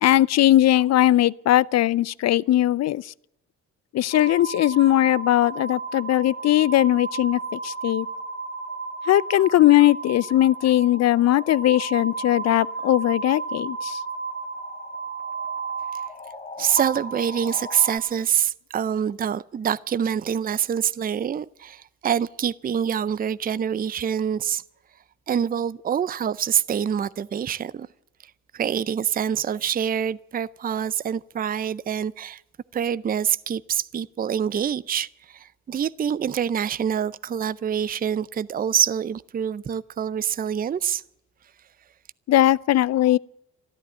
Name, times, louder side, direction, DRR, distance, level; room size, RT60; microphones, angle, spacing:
voice 1, 0.0-3.1 3.9-8.1 9.1-14.0 42.3-43.2, left 14 dB, 60° left, 0.5 m, -19 dB
sound 1, 4.1-18.0, right 3 dB, 20° left, 1.8 m, -33 dB
voice 2, 16.6-24.6 25.3-27.9 28.5-32.4 32.7-41.0, right 8 dB, 30° right, 0.5 m, -26 dB
13.5 x 12.0 x 8.8 m
cardioid pair, 90°, 30 cm